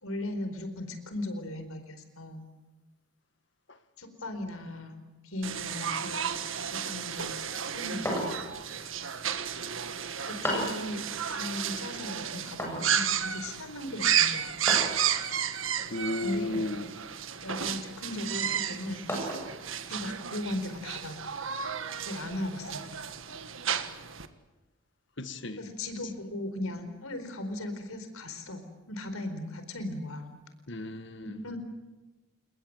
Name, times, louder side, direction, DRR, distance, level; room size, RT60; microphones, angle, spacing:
voice 1, 0.0-2.4 4.0-7.4 7.7-8.4 8.6-8.9 10.3-11.0 11.3-14.5 16.2-16.5 17.4-19.1 19.9-21.2 22.0-23.0 25.6-30.3 31.2-31.6, left 1 dB, 90° left, 4.5 m, -37 dB
sound 1, 5.4-24.3, right 8 dB, 70° right, 1.7 m, -32 dB
sound 2, 8.0-8.6 10.4-10.8 12.6-12.9 14.7-15.0 16.5-16.9 17.5-17.7 19.1-19.5, equal, 10° left, 7.9 m, -33 dB
voice 2, 15.9-16.9 25.2-25.6 30.7-31.4, left 2 dB, 55° left, 1.8 m, -34 dB
29.5 x 20.0 x 8.0 m
head